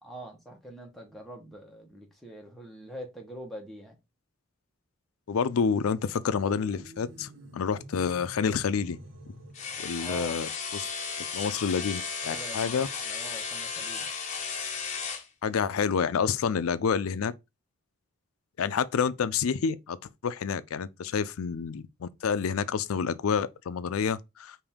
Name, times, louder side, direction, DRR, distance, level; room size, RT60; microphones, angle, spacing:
voice 1, 0.0-4.0 10.0-10.4 12.3-14.1, right 1 dB, ahead, 1.1 m, -44 dB
voice 2, 5.3-9.0 9.8-10.8 11.3-12.9 15.4-17.3 18.6-20.0 20.2-24.6, left 6 dB, 90° left, 0.4 m, -28 dB
sound 1, 6.4-9.9, right 1 dB, 65° right, 0.9 m, -48 dB
sound 2, 9.5-15.3, left 5 dB, 35° left, 0.9 m, -35 dB
5.1 x 2.7 x 3.5 m
head